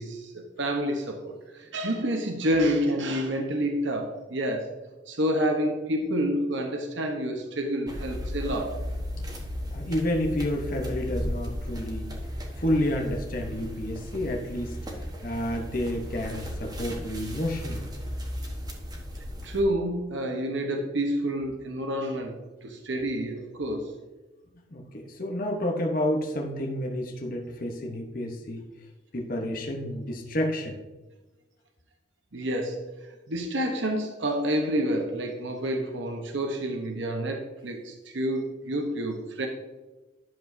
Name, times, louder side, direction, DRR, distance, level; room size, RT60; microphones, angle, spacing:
voice 1, 0.0-4.8 5.1-8.8 19.4-24.0 32.3-32.9 33.3-39.5, equal, 70° right, 3 dB, 1.0 m, -28 dB
sound 1, 7.9-19.6, equal, 20° right, 1.2 m, -35 dB
voice 2, 9.7-12.1 12.6-14.8 15.2-17.9 24.7-28.6 29.1-30.8, left 1 dB, 45° left, 1 dB, 1.0 m, -30 dB
11.0 x 7.0 x 2.7 m, 1.2 s
head